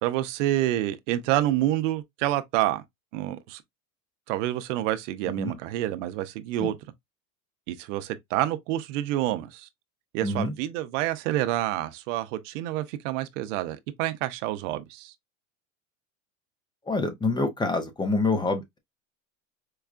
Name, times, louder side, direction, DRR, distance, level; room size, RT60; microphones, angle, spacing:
voice 1, 0.0-2.8 3.1-3.6 4.3-6.7 7.7-9.7 10.1-15.1, right 14 dB, 75° right, 0.7 m, -28 dB
voice 2, 10.2-10.5 16.9-18.8, left 3 dB, 10° left, 0.6 m, -26 dB
4.7 x 2.2 x 2.4 m
supercardioid pair, 125°, 38 cm